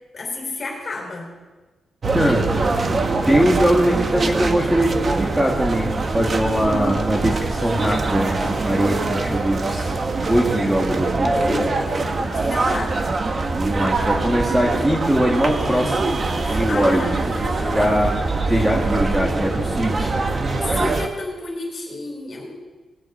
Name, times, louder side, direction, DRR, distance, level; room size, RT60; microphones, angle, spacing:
voice 1, 0.1-1.3 11.3-13.0 16.4-18.2 20.6-22.6, left 2 dB, 35° left, -1 dB, 5.3 m, -31 dB
sound 1, 2.0-21.1, right 3 dB, 30° right, 1.2 m, -23 dB
voice 2, 2.1-2.5 2.9-9.9 10.3-11.3 13.5-16.1 16.5-17.0 17.7-18.1 18.5-20.1, equal, 5° right, -1 dB, 1.7 m, -21 dB
20.0 x 16.5 x 4.3 m, 1.2 s
wide cardioid pair, 165°, 0 cm